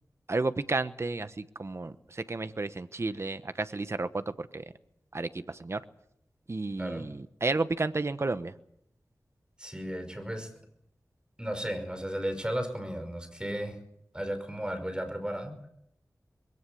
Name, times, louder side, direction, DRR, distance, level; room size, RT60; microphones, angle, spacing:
voice 1, 0.3-4.6 5.1-5.8 6.5-8.5, right 3 dB, 45° right, 12 dB, 1.0 m, -32 dB
voice 2, 9.6-10.5 11.4-13.8 14.1-15.6, equal, 15° right, 7 dB, 5.4 m, -34 dB
22.0 x 17.5 x 8.6 m, 0.74 s
wide cardioid pair, 75°, 6 cm